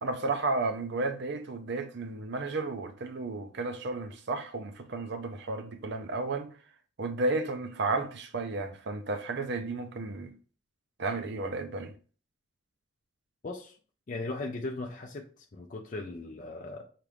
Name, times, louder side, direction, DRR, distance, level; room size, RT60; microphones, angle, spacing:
voice 1, 0.0-6.5 7.0-10.3 11.0-11.9, right 3 dB, 50° right, 0.6 m, -33 dB
voice 2, 13.4-13.7 14.1-16.9, left 2 dB, 40° left, 0.4 m, -38 dB
5.8 x 2.5 x 3.3 m
head